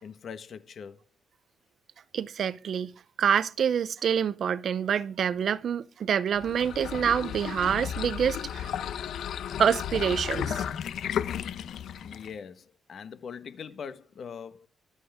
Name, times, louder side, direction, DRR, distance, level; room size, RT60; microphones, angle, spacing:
voice 1, 0.0-1.0 12.0-14.7, left 6 dB, 45° left, 1.4 m, -42 dB
voice 2, 2.1-2.9 3.2-8.8 9.6-10.7, right 8 dB, 50° right, 0.6 m, -26 dB
sound 1, 6.3-12.4, left 9 dB, 70° left, 0.9 m, -34 dB
24.0 x 8.3 x 3.6 m
cardioid pair, 160°, 0 cm